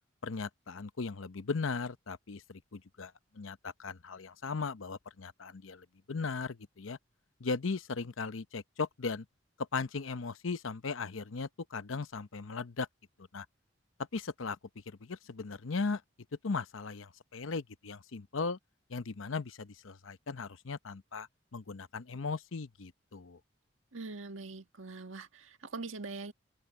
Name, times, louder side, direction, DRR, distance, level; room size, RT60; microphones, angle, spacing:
voice 1, 0.2-7.0 7.4-9.3 9.7-12.9 13.3-13.5 14.1-14.6 14.9-16.0 16.4-18.6 18.9-23.4, left 4 dB, 90° left, 0.8 m, -37 dB
voice 2, 23.9-26.3, right 3 dB, 90° right, 1.7 m, -43 dB
head